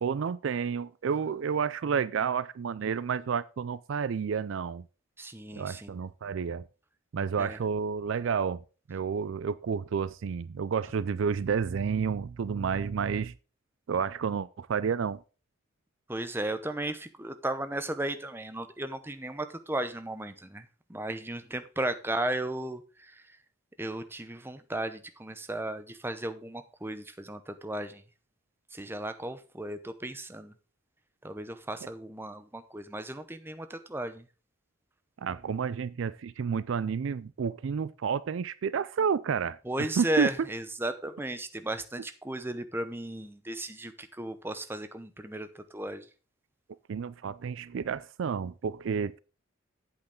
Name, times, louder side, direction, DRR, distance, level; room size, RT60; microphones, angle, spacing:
voice 1, 0.0-4.8 5.6-6.7 7.1-8.6 8.9-13.3 13.9-15.2 35.2-40.3 46.9-49.2, right 6 dB, 65° right, 0.4 m, -30 dB
voice 2, 5.2-5.9 7.4-7.6 16.1-20.6 20.9-22.8 23.8-28.0 28.7-30.5 31.2-34.2 39.7-46.0, right 1 dB, 10° right, 0.7 m, -35 dB
8.7 x 8.1 x 3.7 m
head